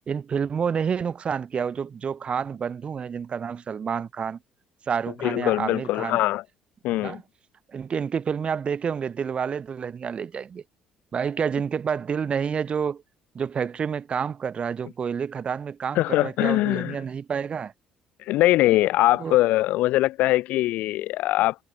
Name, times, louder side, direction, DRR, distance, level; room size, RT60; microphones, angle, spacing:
voice 1, 0.1-4.4 4.9-6.2 7.0-7.2 7.7-10.6 11.1-13.0 13.3-17.7 19.2-19.4, right 6 dB, 45° right, 0.7 m, -29 dB
voice 2, 5.2-6.4 6.8-7.2 16.0-17.0 18.3-21.6, left 16 dB, 70° left, 0.4 m, -22 dB
supercardioid pair, 65°, 3 cm